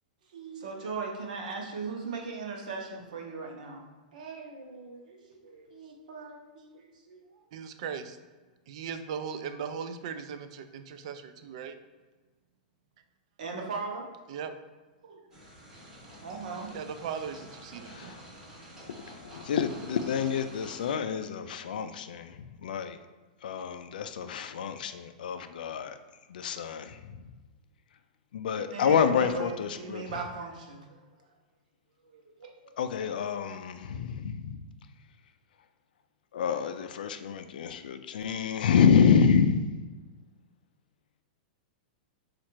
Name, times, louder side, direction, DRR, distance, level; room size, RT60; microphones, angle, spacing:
voice 1, 0.3-3.9 4.1-7.4 13.4-14.0 15.0-15.2 16.2-16.7 28.7-29.5 29.8-31.0 32.0-32.5, right 4 dB, 65° right, 0 dB, 0.8 m, -39 dB
voice 2, 7.5-8.2 8.7-11.8 14.3-14.5 16.7-18.2, right 7 dB, 45° right, 9 dB, 0.3 m, -38 dB
sound 1, 15.3-20.9, right 1 dB, 10° right, 0.7 m, -49 dB
voice 3, 17.8-18.2 18.9-23.0 23.4-26.0 26.3-27.2 28.3-30.0 32.8-34.6 36.3-39.8, left 6 dB, 85° left, 9 dB, 0.3 m, -28 dB
4.2 x 2.5 x 4.4 m, 1.3 s
supercardioid pair, 175°, 5 cm